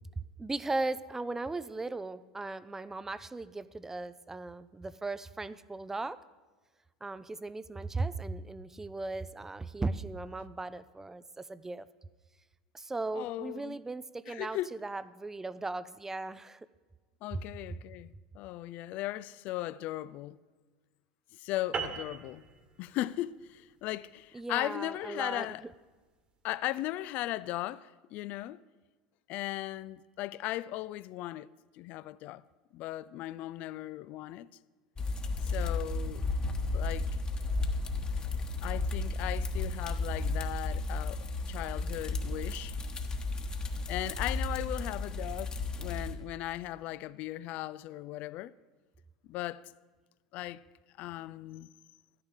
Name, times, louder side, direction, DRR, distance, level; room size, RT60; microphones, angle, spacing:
voice 1, 0.4-6.2 7.0-11.9 12.7-16.6 17.3-17.4 24.3-25.7, right 3 dB, 10° right, 0.4 m, -37 dB
voice 2, 13.1-13.8 14.3-14.7 17.2-18.1 18.3-20.4 21.4-22.4 22.8-25.6 26.4-28.6 29.3-31.5 31.8-32.4 32.7-34.5 35.4-36.2 36.7-37.1 38.6-42.8 43.9-48.5 49.3-49.7 50.3-50.6 51.0-51.7, left 15 dB, 50° left, 0.3 m, -37 dB
sound 1, 21.7-26.5, right 5 dB, 30° right, 1.4 m, -42 dB
sound 2, 35.0-46.1, left 3 dB, 25° left, 1.2 m, -33 dB
13.0 x 9.8 x 4.8 m
figure-of-eight pair, 75°, 3 cm